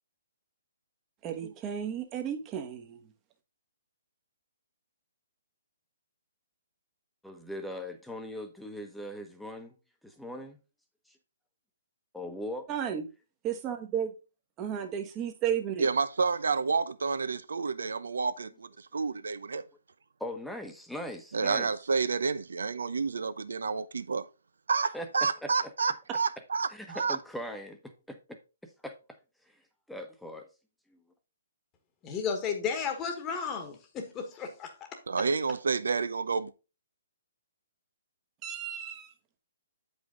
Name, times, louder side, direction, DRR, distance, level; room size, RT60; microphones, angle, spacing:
voice 1, 1.2-3.0 12.7-13.1 13.4-14.1 14.6-15.9 38.4-39.1, right 9 dB, 25° right, 1.1 m, -33 dB
voice 2, 7.2-9.7 10.0-10.6 11.1-11.2 12.1-12.7 20.2-21.7 24.9-25.7 26.7-27.8 28.8-28.9 29.9-30.5 30.9-31.0, left 1 dB, ahead, 1.0 m, -40 dB
voice 3, 15.8-19.6 21.3-24.3 24.7-27.2 35.1-36.5, right 4 dB, 80° right, 0.7 m, -29 dB
voice 4, 32.0-34.9, left 6 dB, 20° left, 1.3 m, -33 dB
7.9 x 5.4 x 3.7 m
hypercardioid pair, 140°, 0 cm